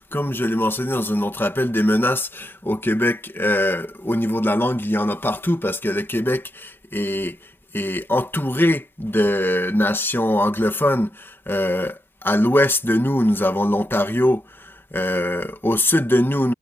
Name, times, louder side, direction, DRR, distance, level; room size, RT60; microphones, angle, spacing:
voice 1, 0.0-7.4 7.7-16.5, left 1 dB, 10° left, 1.8 m, -21 dB
head